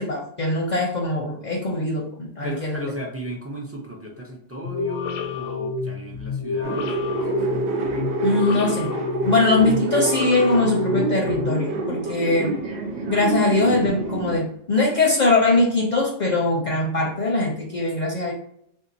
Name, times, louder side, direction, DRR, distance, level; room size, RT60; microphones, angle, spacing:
voice 1, 0.0-2.9 8.2-8.9 9.2-12.5 13.1-18.3, left 2 dB, 50° left, -1 dB, 0.6 m, -21 dB
voice 2, 2.4-7.4, equal, 25° right, -1 dB, 0.3 m, -35 dB
sound 1, 4.6-11.5, left 5 dB, 90° left, 1.0 m, -29 dB
sound 2, 6.6-14.4, right 3 dB, 70° right, 1.0 m, -27 dB
3.4 x 2.7 x 2.6 m, 0.71 s
omnidirectional pair, 1.3 m